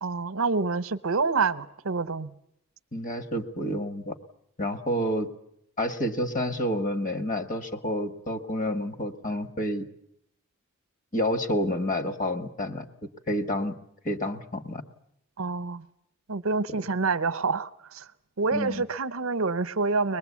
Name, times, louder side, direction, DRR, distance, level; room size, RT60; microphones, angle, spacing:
voice 1, 0.0-2.3 15.4-15.8 16.3-18.0 18.4-20.2, right 4 dB, 60° right, 0.8 m, -27 dB
voice 2, 2.9-4.1 4.6-5.3 5.8-9.9 11.1-12.9 13.3-13.8 14.0-14.8 18.5-18.8, equal, 35° left, 1.5 m, -29 dB
23.5 x 20.5 x 8.4 m
head